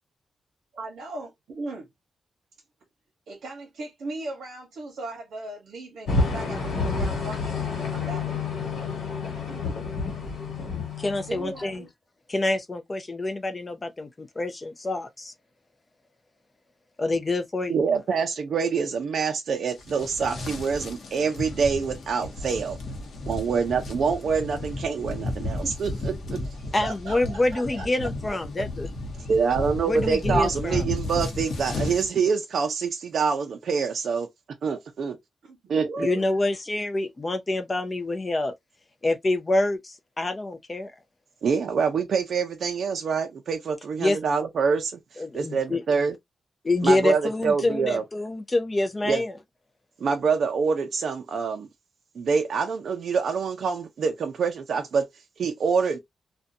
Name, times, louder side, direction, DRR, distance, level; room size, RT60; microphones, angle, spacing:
voice 1, 0.8-1.9 3.3-8.3 9.4-9.8 11.3-11.9 25.6-25.7 26.6-27.9 28.6-28.7 30.0-30.4 35.4-36.3, right 2 dB, 80° right, 0.8 m, -38 dB
sound 1, 6.1-11.8, left 4 dB, 90° left, 1.3 m, -29 dB
voice 2, 11.0-11.8 12.3-15.3 17.0-17.7 26.7-28.9 29.8-30.8 36.0-38.5 39.0-40.9 44.0-44.2 45.2-45.8 46.6-49.3, left 2 dB, 20° left, 0.4 m, -26 dB
voice 3, 17.7-22.8 23.3-26.4 29.3-34.3 34.6-35.2 35.7-36.1 41.4-46.1 46.8-48.0 49.1-49.2 50.0-51.7 52.2-55.1 55.4-56.0, right 5 dB, 55° right, 0.5 m, -26 dB
sound 2, 19.7-32.1, left 2 dB, 50° left, 0.8 m, -33 dB
2.5 x 2.2 x 2.5 m
wide cardioid pair, 180°, 0 cm